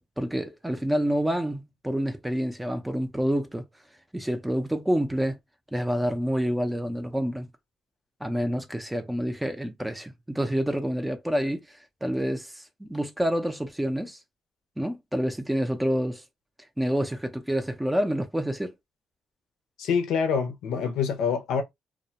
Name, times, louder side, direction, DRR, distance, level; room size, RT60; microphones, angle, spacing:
voice 1, 0.2-3.7 4.1-5.4 5.7-7.5 8.2-14.2 14.8-16.2 16.8-18.7, equal, 10° right, 0.4 m, -28 dB
voice 2, 19.8-21.6, left 6 dB, 85° left, 0.6 m, -26 dB
2.2 x 2.1 x 2.7 m
cardioid pair, 90°, 0 cm